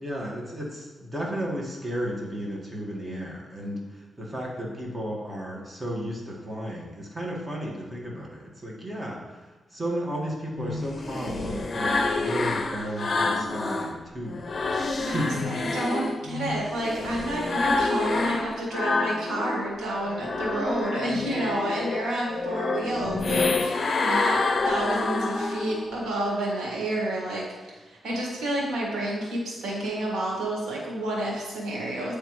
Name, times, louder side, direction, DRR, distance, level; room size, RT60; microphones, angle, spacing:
voice 1, 0.0-15.7, equal, 25° right, -2 dB, 1.7 m, -34 dB
sound 1, 10.5-13.9 14.3-19.7 20.0-25.9, left 3 dB, 50° left, 0.6 m, -28 dB
voice 2, 15.0-32.2, right 1 dB, 85° right, -3 dB, 1.7 m, -30 dB
9.0 x 3.3 x 3.1 m, 1.3 s
cardioid pair, 65°, 0 cm